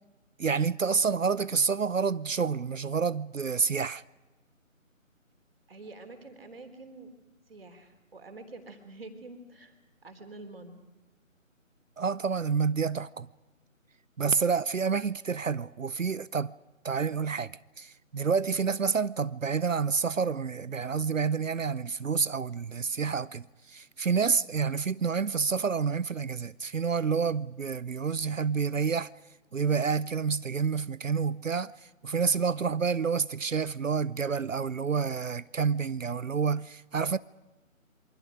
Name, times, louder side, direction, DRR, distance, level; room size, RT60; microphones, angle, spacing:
voice 1, 0.4-4.0 12.0-13.3 14.2-16.5 16.8-29.1 29.5-37.2, right 5 dB, 70° right, 0.7 m, -28 dB
voice 2, 5.7-7.1 7.5-9.8 10.0-10.8, right 2 dB, 45° right, 3.6 m, -47 dB
27.5 x 25.0 x 5.0 m
figure-of-eight pair, 160°, 41 cm